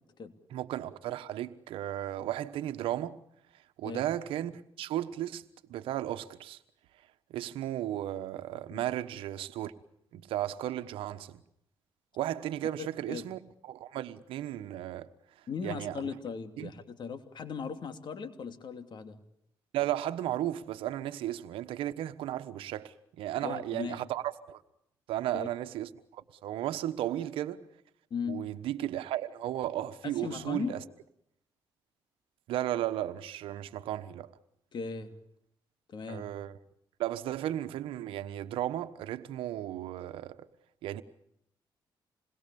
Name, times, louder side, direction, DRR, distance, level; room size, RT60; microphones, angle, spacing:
voice 1, 0.5-3.2 3.8-6.6 7.3-9.7 10.1-11.4 12.1-15.1 15.6-16.0 16.6-16.7 19.7-24.6 25.1-27.6 28.3-30.8 32.5-34.3 36.1-36.6 37.0-40.5 40.8-41.0, right 12 dB, 85° right, 1.2 m, -35 dB
voice 2, 12.6-13.3 15.5-19.2 23.4-24.0 25.3-25.5 28.1-28.4 30.0-30.7 34.7-35.1 35.9-36.3, left 6 dB, 60° left, 2.9 m, -38 dB
27.5 x 21.0 x 7.0 m
cardioid pair, 70°, 9 cm